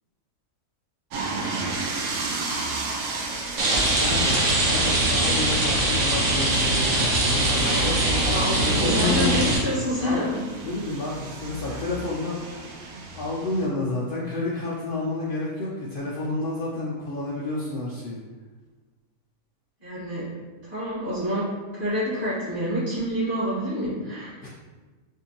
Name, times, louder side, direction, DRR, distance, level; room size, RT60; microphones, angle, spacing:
sound 1, 1.1-13.7, right 3 dB, 85° right, 1.1 m, -34 dB
Rain, 3.6-9.6, right 1 dB, 60° right, 1.1 m, -22 dB
voice 1, 3.9-8.3 8.6-9.4 10.0-10.3 10.6-12.4 13.1-18.2 24.4-24.5, left 2 dB, 85° left, -5 dB, 0.4 m, -30 dB
voice 2, 8.2-10.5 11.7-11.8 19.8-20.2 20.6-21.4 21.7-24.3, equal, 35° right, -9 dB, 1.7 m, -27 dB
4.3 x 2.6 x 2.8 m, 1.3 s
omnidirectional pair, 1.5 m